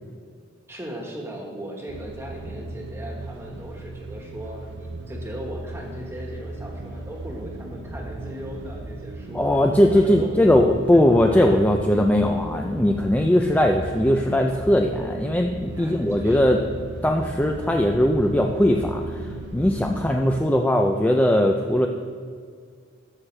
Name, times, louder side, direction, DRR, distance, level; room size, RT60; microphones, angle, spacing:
voice 1, 0.7-9.5 9.8-10.3 10.9-11.0 13.2-13.3 15.7-16.5 19.9-20.4, right 1 dB, 15° right, 0 dB, 1.4 m, -38 dB
sound 1, 1.9-20.2, right 2 dB, 60° right, 0.7 m, -36 dB
voice 2, 9.3-16.6 17.0-19.3 19.5-21.9, left 1 dB, 10° left, 2 dB, 0.4 m, -19 dB
13.0 x 6.3 x 3.3 m, 2.1 s
head